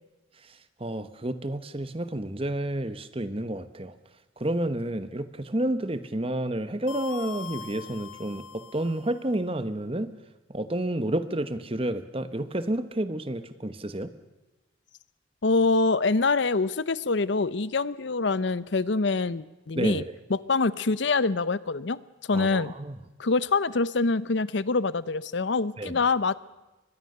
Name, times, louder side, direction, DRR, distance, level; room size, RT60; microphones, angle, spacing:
voice 1, 0.8-3.9 4.4-10.1 10.5-14.1 19.7-20.1 22.3-23.0 25.8-26.0, right 1 dB, 25° right, 11 dB, 1.1 m, -30 dB
sound 1, 6.9-9.2, left 7 dB, 80° left, 1.1 m, -42 dB
voice 2, 15.4-20.0 20.3-22.0 22.3-22.7 23.2-26.3, left 3 dB, 60° left, 18 dB, 0.7 m, -25 dB
23.5 x 21.0 x 6.7 m, 1.1 s
head